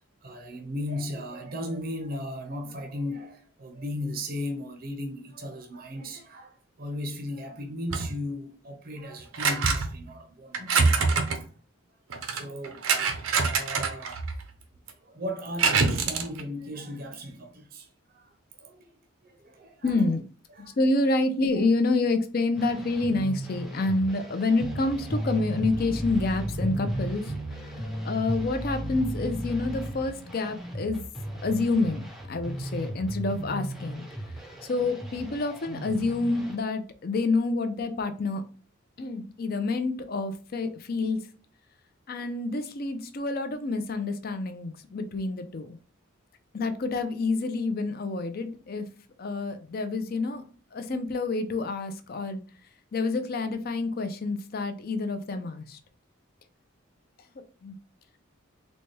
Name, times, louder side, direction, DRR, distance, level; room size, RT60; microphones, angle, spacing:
voice 1, 0.2-11.4 12.3-14.2 15.0-18.3 18.6-18.9 19.2-19.9 20.6-20.8, left 1 dB, 45° right, 0.6 m, -37 dB
sound 1, 7.9-8.1 9.3-10.0 10.5-11.4 12.1-14.5 14.9-15.0 15.6-16.4, right 4 dB, 85° right, 0.6 m, -25 dB
voice 2, 19.8-20.2 20.6-27.3 28.0-31.0 31.4-34.1 34.6-38.4 39.0-41.2 42.1-45.8 46.5-48.9 49.2-52.4 52.9-55.8 57.3-57.8, left 3 dB, 45° left, 0.5 m, -28 dB
sound 2, 22.5-36.6, right 1 dB, ahead, 0.5 m, -39 dB
sound 3, 24.6-29.9, equal, 90° left, 1.0 m, -33 dB
4.0 x 2.2 x 3.2 m
head